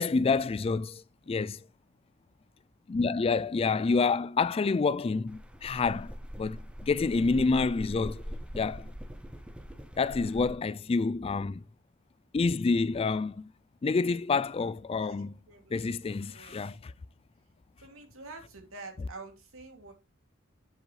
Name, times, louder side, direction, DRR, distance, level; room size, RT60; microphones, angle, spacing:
voice 1, 0.0-1.6 2.9-6.1 6.4-8.2 8.5-8.9 10.0-11.6 12.3-13.5 13.8-15.4 15.7-16.9, left 4 dB, 25° left, 0.3 m, -28 dB
sound 1, 5.3-10.5, equal, 5° right, 0.7 m, -42 dB
voice 2, 15.0-16.0 16.3-16.8 17.8-19.9, right 3 dB, 80° right, 2.6 m, -48 dB
7.7 x 7.4 x 3.2 m
head